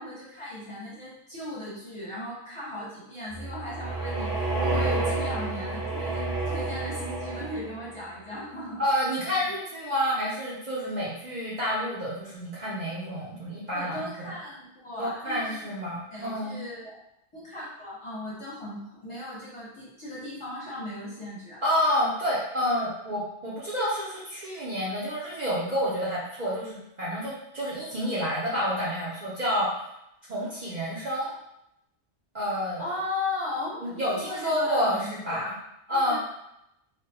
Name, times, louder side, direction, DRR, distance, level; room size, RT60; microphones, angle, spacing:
voice 1, 0.0-8.8 9.4-9.5 13.7-15.6 16.1-17.0 17.3-21.6 32.8-35.4 35.9-36.2, left 2 dB, 30° left, -8 dB, 0.8 m, -37 dB
sound 1, 3.3-7.9, right 2 dB, 20° right, 1.1 m, -29 dB
voice 2, 8.8-14.3 15.0-16.6 21.6-29.7 30.3-31.3 32.3-32.9 33.8-35.5 35.9-36.2, equal, 50° right, -7 dB, 0.7 m, -29 dB
3.2 x 2.1 x 2.8 m, 0.81 s
omnidirectional pair, 1.2 m